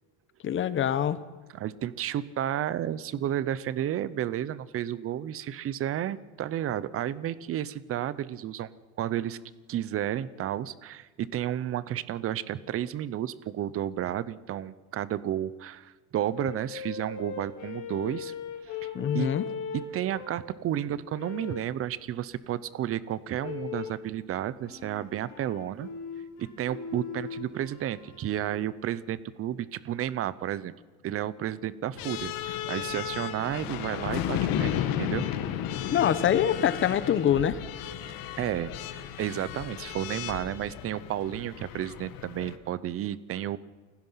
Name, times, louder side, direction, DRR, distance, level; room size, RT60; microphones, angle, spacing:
voice 1, 0.4-1.2 18.9-19.4 35.9-37.6, left 9 dB, 30° left, 15 dB, 1.0 m, -24 dB
voice 2, 1.5-8.7 9.0-9.4 9.7-18.3 18.7-19.3 19.9-25.9 26.4-30.7 31.0-35.3 38.4-38.7 39.2-43.6, right 11 dB, 35° right, 18 dB, 0.8 m, -32 dB
sound 1, 16.3-20.6 21.2-21.8 23.4-24.0 24.6-28.6, left 7 dB, 85° left, 4.3 m, -39 dB
sound 2, 32.0-42.6, left 10 dB, 60° left, 1.9 m, -34 dB
29.0 x 16.5 x 5.8 m, 1.4 s
cardioid pair, 145°, 40 cm